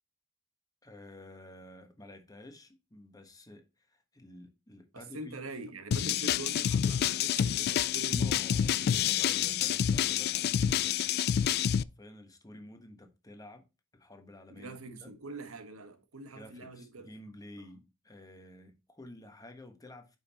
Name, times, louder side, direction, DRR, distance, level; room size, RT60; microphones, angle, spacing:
voice 1, 0.8-5.4 8.2-11.0 12.0-13.6 13.9-15.1 16.3-20.2, left 1 dB, 15° left, 1.3 m, -51 dB
voice 2, 4.9-8.9 14.5-17.1 17.6-17.7, right 3 dB, 80° right, 1.3 m, -44 dB
sound 1, 5.9-11.8, left 9 dB, 50° left, 0.3 m, -28 dB
8.8 x 5.6 x 2.9 m
head